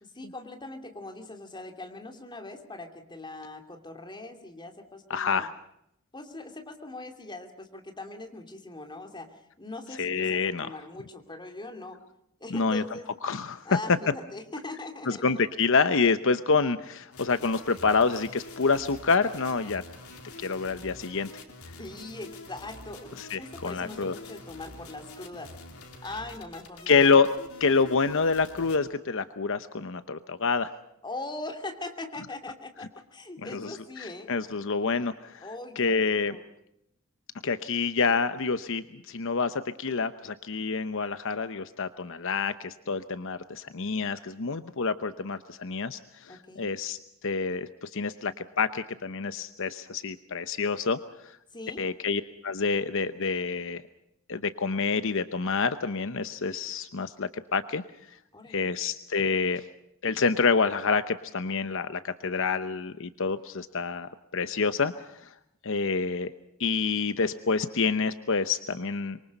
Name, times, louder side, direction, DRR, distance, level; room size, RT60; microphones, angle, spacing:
voice 1, 0.0-5.5 6.1-9.3 9.6-12.0 12.4-13.1 13.6-15.4 21.8-25.5 26.0-27.1 31.0-34.3 35.4-36.4 46.3-46.7 51.5-51.8 58.3-58.7, left 2 dB, 20° left, 4 dB, 2.9 m, -41 dB
voice 2, 5.1-5.5 10.0-10.7 12.5-12.8 13.2-13.6 15.1-19.8 20.4-21.4 23.2-24.1 26.9-27.3 27.6-30.7 33.5-33.7 34.0-35.5 35.8-36.3 37.4-47.0 47.2-51.0 51.8-53.8 54.3-57.8 58.5-59.6 60.0-65.1 65.6-66.3 66.6-69.2, left 4 dB, 65° left, 11 dB, 0.9 m, -27 dB
sound 1, 17.1-28.8, left 2 dB, 90° left, 3.9 m, -46 dB
26.0 x 23.5 x 5.4 m, 0.77 s
head